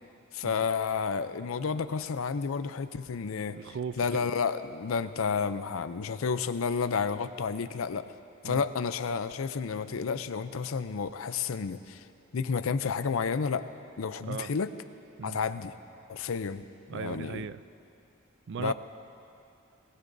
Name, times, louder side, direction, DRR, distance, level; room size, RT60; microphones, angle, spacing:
voice 1, 0.3-3.6 4.0-8.1 8.4-12.0 12.3-13.6 14.0-14.7 15.2-15.7 16.1-16.6 16.9-17.4 18.6-18.7, left 5 dB, 85° left, 12 dB, 0.5 m, -31 dB
voice 2, 3.5-4.3 8.4-8.6 14.3-14.5 15.2-15.4 16.9-17.6 18.5-18.7, right 6 dB, 60° right, 14 dB, 0.4 m, -37 dB
20.0 x 19.5 x 2.7 m, 2.7 s
head